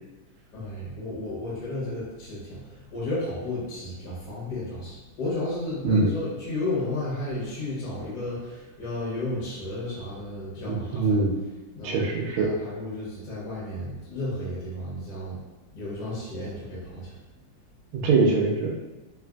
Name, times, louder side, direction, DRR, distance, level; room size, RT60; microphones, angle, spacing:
voice 1, 0.5-11.2 11.7-12.0 12.4-15.4 15.7-17.1, left 2 dB, 60° left, -7 dB, 1.5 m, -33 dB
voice 2, 10.7-11.3 11.8-12.5 17.9-18.7, right 3 dB, 85° right, 0 dB, 1.5 m, -23 dB
3.7 x 2.4 x 2.3 m, 1.1 s
omnidirectional pair, 2.3 m